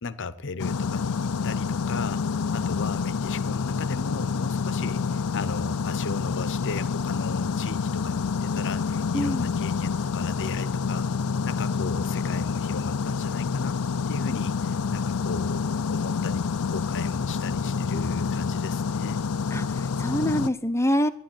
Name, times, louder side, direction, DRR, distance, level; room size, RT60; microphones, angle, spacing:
voice 1, 0.0-2.2 2.5-11.1 11.4-13.8 14.1-19.2, left 4 dB, 55° left, 14 dB, 0.8 m, -36 dB
sound 1, 0.6-20.5, left 5 dB, 85° left, 0.5 m, -28 dB
voice 2, 9.1-9.5 19.5-21.1, equal, 10° left, 10 dB, 0.8 m, -25 dB
13.0 x 11.0 x 9.0 m, 0.72 s
head